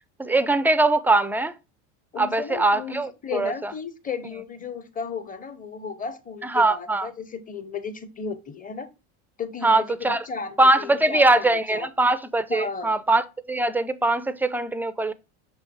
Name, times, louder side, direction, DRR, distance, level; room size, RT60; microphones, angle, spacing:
voice 1, 0.2-1.6 2.2-3.7 6.4-7.1 9.6-10.2 10.6-15.1, right 2 dB, 5° right, 0.4 m, -22 dB
voice 2, 2.1-8.9 9.4-11.9 12.5-12.9, left 5 dB, 20° left, 0.9 m, -34 dB
6.0 x 3.5 x 4.6 m
hypercardioid pair, 85°, 36 cm